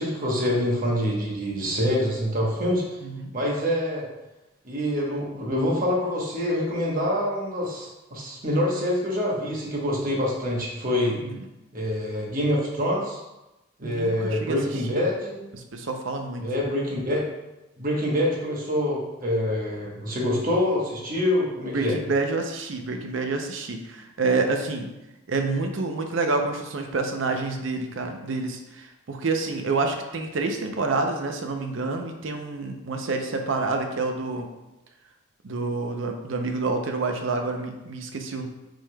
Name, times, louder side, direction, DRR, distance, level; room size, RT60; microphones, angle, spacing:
voice 1, 0.0-3.0 3.3-4.0 4.6-11.2 11.7-13.2 13.8-15.4 16.4-17.2 17.8-22.0, left 1 dB, 45° right, -3 dB, 1.0 m, -26 dB
voice 2, 13.8-14.6 15.5-16.4 21.7-24.9 25.3-34.5 35.4-38.5, right 3 dB, 75° right, 4 dB, 0.6 m, -28 dB
6.0 x 3.6 x 2.2 m, 0.99 s
head